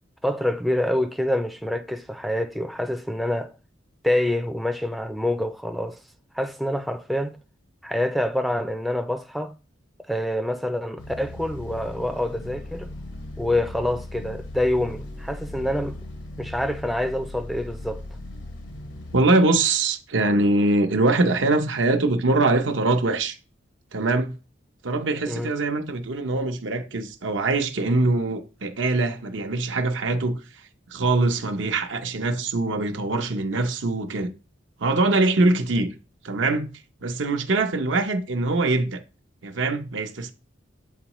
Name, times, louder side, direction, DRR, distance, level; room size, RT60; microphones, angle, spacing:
voice 1, 0.2-3.5 4.0-6.0 6.3-7.4 7.8-9.6 10.1-12.9 13.4-16.0 16.4-18.0 25.3-25.5, left 1 dB, ahead, 0.3 m, -26 dB
sound 1, 11.0-19.2, left 1 dB, 85° left, 1.0 m, -38 dB
voice 2, 19.1-23.4 23.9-24.4 24.8-30.4 30.9-34.3 34.8-35.9 36.2-36.7 37.0-39.0 39.4-40.3, right 2 dB, 85° right, 0.8 m, -23 dB
8.2 x 3.8 x 3.0 m
head